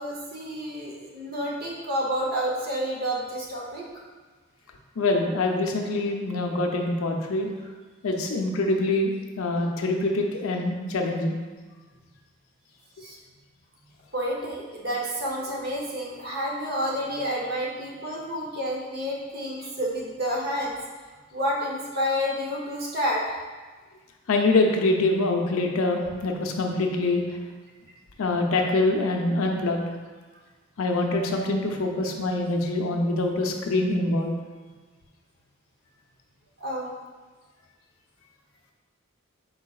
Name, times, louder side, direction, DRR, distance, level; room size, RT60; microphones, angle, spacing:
voice 1, 0.0-3.9 13.0-13.2 14.1-20.7 21.3-23.4 36.6-36.9, equal, 45° right, -3 dB, 0.8 m, -29 dB
voice 2, 5.0-7.5 8.0-11.4 24.3-27.2 28.2-30.0 30.8-34.4, left 2 dB, 80° left, 2 dB, 0.5 m, -25 dB
4.6 x 3.9 x 2.4 m, 1.4 s
head